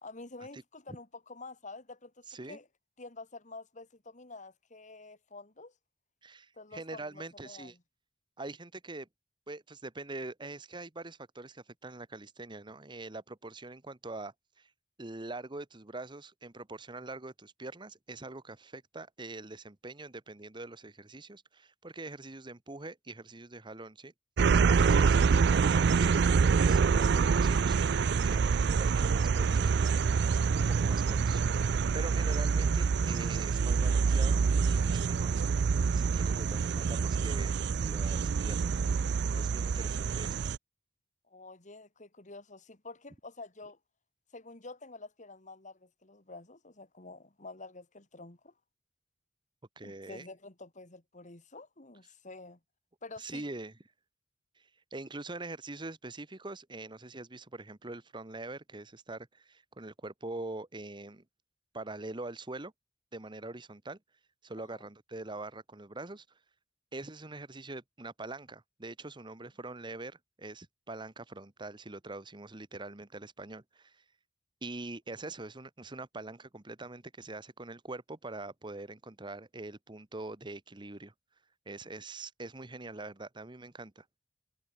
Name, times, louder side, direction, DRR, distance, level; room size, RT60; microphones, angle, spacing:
voice 1, 0.0-2.7 3.0-5.7 6.6-7.8 41.3-43.8 44.3-48.5 49.8-52.6 53.0-53.5 64.6-64.9, left 3 dB, 45° left, 2.7 m, -48 dB
voice 2, 2.3-2.6 6.2-7.7 8.4-9.1 9.5-14.7 15.0-24.1 24.5-29.7 30.5-31.4 31.9-35.3 35.9-37.5 37.8-38.6 39.4-40.4 49.8-50.3 53.2-53.7 54.6-61.2 61.7-62.7 63.1-64.0 64.4-66.2 66.9-74.0 74.6-81.1 81.6-84.0, right 2 dB, 25° right, 1.3 m, -44 dB
sound 1, 24.4-40.6, right 5 dB, 65° right, 0.4 m, -26 dB
head